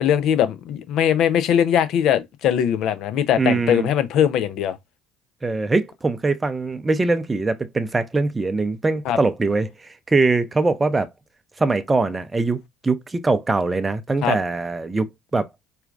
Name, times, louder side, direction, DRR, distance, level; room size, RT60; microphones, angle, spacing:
voice 1, 0.0-4.8 9.0-9.2 14.2-14.4, left 9 dB, 60° left, 0.6 m, -20 dB
voice 2, 3.4-3.9 5.4-11.1 11.6-12.6 12.8-15.0 15.3-15.5, right 3 dB, 20° right, 0.5 m, -22 dB
4.3 x 2.4 x 2.5 m
hypercardioid pair, 70°, 0 cm